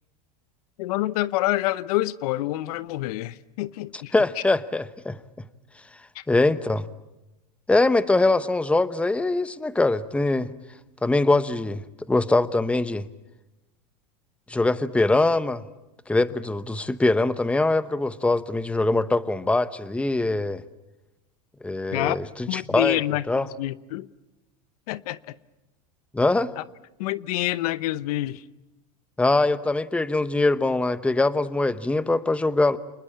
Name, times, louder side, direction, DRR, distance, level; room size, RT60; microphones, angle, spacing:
voice 1, 0.8-4.1 6.1-6.2 21.9-22.2 22.5-24.1 24.9-25.4 26.6-26.7 27.0-28.4, left 16 dB, 70° left, 0.8 m, -27 dB
voice 2, 4.1-5.2 6.3-6.9 7.7-10.5 11.0-11.8 12.1-13.0 14.5-15.6 16.1-20.6 21.6-22.2 22.5-23.0 23.3-23.5 26.1-26.5 29.2-32.8, left 2 dB, 5° left, 0.9 m, -22 dB
28.5 x 20.5 x 8.6 m
supercardioid pair, 115°, 20 cm